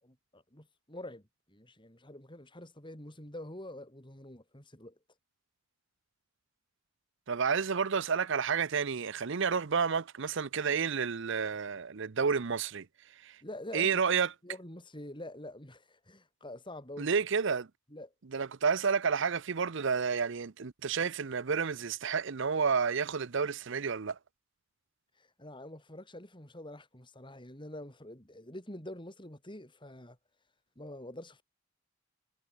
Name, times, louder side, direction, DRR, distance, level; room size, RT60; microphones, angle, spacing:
voice 1, 0.0-1.2 1.5-4.9 13.4-14.0 14.4-17.1 17.9-18.1 25.1-30.2 30.7-31.4, left 1 dB, 25° left, 5.1 m, -46 dB
voice 2, 7.3-12.9 13.2-13.4 13.7-14.3 17.0-17.7 18.3-24.2, right 6 dB, 60° right, 0.7 m, -30 dB
head